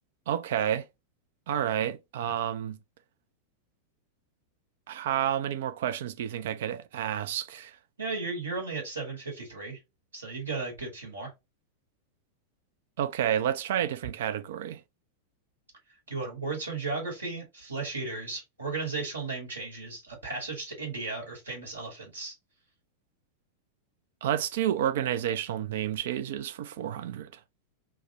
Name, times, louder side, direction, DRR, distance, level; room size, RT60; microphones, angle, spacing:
voice 1, 0.3-0.9 1.5-2.8 4.9-7.8 13.0-14.8 24.2-27.3, right 10 dB, 55° right, 0.3 m, -30 dB
voice 2, 8.0-9.8 10.1-11.3 16.1-22.3, right 3 dB, 75° right, 1.3 m, -35 dB
3.4 x 2.1 x 2.8 m
figure-of-eight pair, 90°, 0 cm